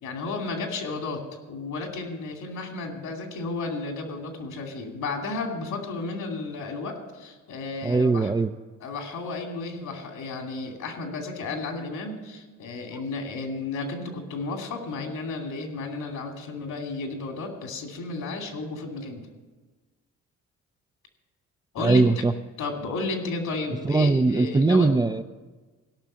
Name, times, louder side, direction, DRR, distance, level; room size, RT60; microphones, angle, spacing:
voice 1, 0.0-1.2 1.5-8.3 8.8-19.2 21.7-22.1 22.6-24.9, left 3 dB, 75° left, 3 dB, 2.7 m, -33 dB
voice 2, 7.8-8.5 21.8-22.3 23.9-25.2, right 3 dB, 15° right, 9 dB, 0.4 m, -20 dB
16.5 x 6.0 x 7.4 m, 1.3 s
cardioid pair, 90°, 30 cm